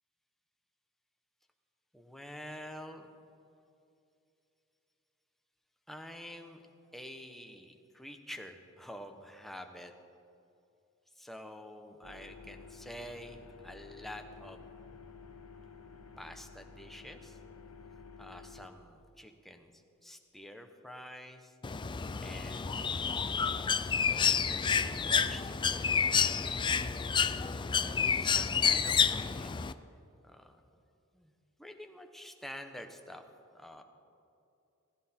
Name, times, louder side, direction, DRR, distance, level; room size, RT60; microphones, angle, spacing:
voice 1, 1.9-3.1 5.9-6.7 6.9-9.9 11.1-14.6 16.2-17.4 18.2-21.5 22.2-23.1 23.9-24.6 25.0-26.8 27.9-29.6 30.2-30.6 31.1-31.3 31.6-33.2 33.5-33.8, equal, ahead, 5 dB, 1.0 m, -48 dB
sound 1, 12.0-18.7, left 4 dB, 85° left, 1.1 m, -52 dB
Bird, 21.6-29.7, left 6 dB, 20° left, 0.4 m, -29 dB
17.0 x 15.0 x 4.4 m, 2.6 s
head